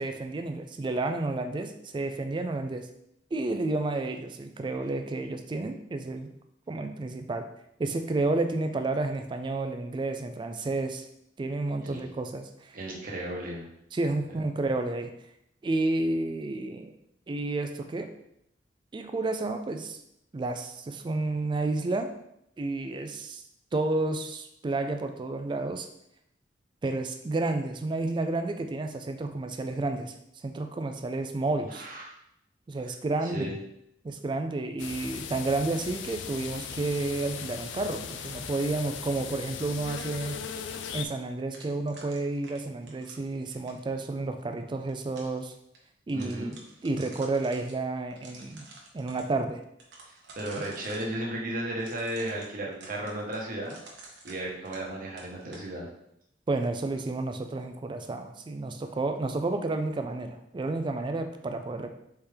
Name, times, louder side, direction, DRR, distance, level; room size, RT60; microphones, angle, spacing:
voice 1, 0.0-2.9 3.3-6.3 6.7-7.5 7.8-11.1 11.4-12.7 13.9-15.1 15.6-16.9 17.3-18.1 18.9-20.0 20.3-22.1 22.6-23.4 23.7-25.9 26.8-30.1 30.4-31.9 32.7-33.5 34.0-40.4 40.9-45.5 46.1-46.5 46.8-48.7 48.9-49.6 56.5-61.9, right 2 dB, 25° right, 7 dB, 0.3 m, -31 dB
voice 2, 12.7-13.7 31.7-32.1 33.3-33.5 46.1-46.6 50.1-53.8 54.2-55.9, right 1 dB, 50° right, -2 dB, 1.0 m, -35 dB
sound 1, 34.8-41.0, left 7 dB, 80° left, 0.4 m, -38 dB
sound 2, 41.5-43.9 44.6-45.4 45.7-45.8 46.1-47.7 48.1-49.2 49.8-51.1 51.8-54.9 55.2-55.7, right 3 dB, 75° right, 1.0 m, -49 dB
4.3 x 3.4 x 3.5 m, 0.78 s
head